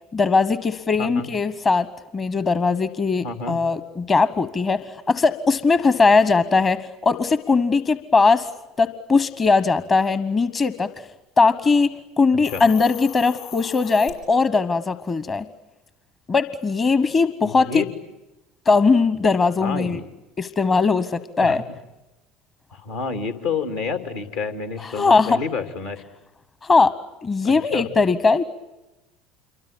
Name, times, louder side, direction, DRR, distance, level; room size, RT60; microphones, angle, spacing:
voice 1, 0.1-1.9 2.1-8.5 8.8-11.1 11.4-15.5 16.3-17.8 18.7-20.0 20.4-21.6 24.8-25.4 26.6-26.9 27.2-28.4, left 4 dB, 30° left, 15 dB, 1.1 m, -19 dB
voice 2, 1.0-1.3 3.2-3.6 12.4-12.6 17.4-17.9 19.6-20.0 21.4-21.6 22.7-26.0 27.4-27.9, left 5 dB, 75° left, 8 dB, 2.7 m, -29 dB
Hiss, 12.3-14.1, left 11 dB, 55° left, 7.3 m, -38 dB
27.0 x 24.0 x 8.6 m, 1.0 s
figure-of-eight pair, 65°, 0 cm